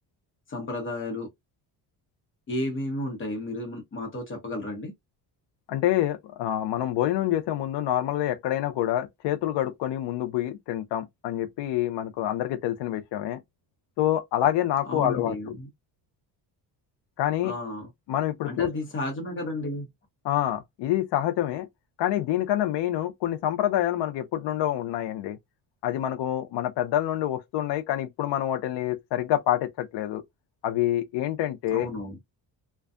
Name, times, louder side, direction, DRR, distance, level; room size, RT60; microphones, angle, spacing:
voice 1, 0.5-1.3 2.5-4.9 14.8-15.7 17.4-17.9 18.5-19.9 31.7-32.2, left 1 dB, 30° left, 0.9 m, -32 dB
voice 2, 5.7-13.4 14.0-15.4 17.2-17.5 18.1-18.7 20.2-21.7 22.0-25.4 25.8-30.2 30.6-31.9, left 12 dB, 75° left, 0.6 m, -27 dB
2.6 x 2.2 x 2.3 m
cardioid pair, 160°, 42 cm